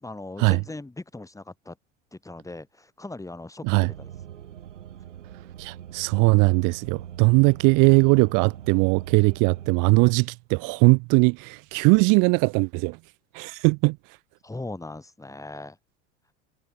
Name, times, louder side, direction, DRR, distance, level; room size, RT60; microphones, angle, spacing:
voice 1, 0.0-1.8 2.1-4.1 14.4-15.8, left 2 dB, 10° left, 2.1 m, -39 dB
sound 1, 3.9-9.7, right 10 dB, 85° right, 4.8 m, -42 dB
voice 2, 5.6-13.0 13.3-14.0, right 31 dB, 60° right, 1.0 m, -20 dB
hypercardioid pair, 80°, 36 cm